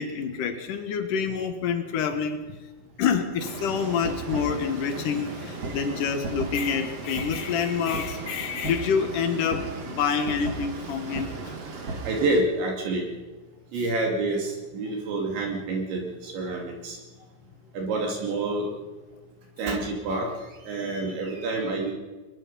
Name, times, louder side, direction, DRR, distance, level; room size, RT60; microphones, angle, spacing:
voice 1, 0.0-2.6 3.0-11.5, left 6 dB, 75° left, 7 dB, 1.9 m, -27 dB
sound 1, 3.4-12.4, right 3 dB, 45° right, 2.4 m, -35 dB
voice 2, 12.0-13.1 13.7-17.0 17.7-18.7 19.6-21.9, right 2 dB, 65° right, 0 dB, 4.7 m, -28 dB
23.5 x 21.5 x 5.5 m, 1.3 s
omnidirectional pair, 6.0 m